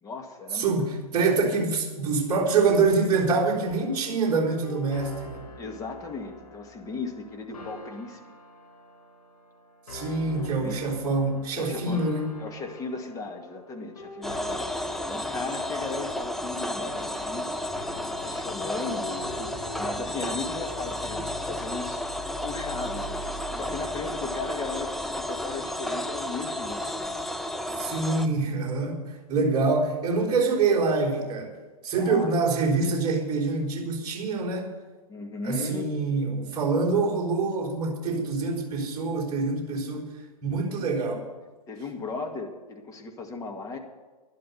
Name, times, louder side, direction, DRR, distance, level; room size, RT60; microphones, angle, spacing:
voice 1, 0.0-0.7 5.6-8.2 10.2-11.0 11.6-12.1 12.4-22.0 22.4-27.4 29.4-29.5 32.0-32.4 35.1-35.9 41.7-43.8, left 3 dB, 15° left, 2 dB, 2.1 m, -37 dB
voice 2, 0.5-5.5 9.9-12.3 27.8-29.0 29.3-31.5 31.8-34.7 35.4-40.1 40.4-41.3, right 4 dB, 25° right, -5 dB, 4.0 m, -25 dB
sound 1, 3.6-21.6, left 2 dB, 70° left, 6.5 m, -46 dB
sound 2, 14.2-28.3, left 1 dB, ahead, 0.6 m, -32 dB
12.0 x 11.5 x 8.1 m, 1.3 s
hypercardioid pair, 120°, 19 cm